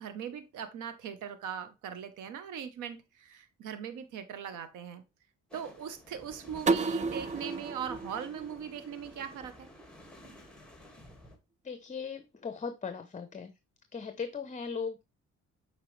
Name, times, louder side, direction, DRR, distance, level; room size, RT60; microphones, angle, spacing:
voice 1, 0.0-5.0 5.5-9.7, right 8 dB, 85° right, 1.1 m, -40 dB
sound 1, 5.5-11.4, left 1 dB, 5° left, 1.9 m, -52 dB
sound 2, 6.7-9.5, right 4 dB, 25° right, 0.4 m, -32 dB
voice 2, 11.6-13.5 13.9-15.0, left 5 dB, 25° left, 0.8 m, -38 dB
8.0 x 4.6 x 3.2 m
cardioid pair, 90°, 30 cm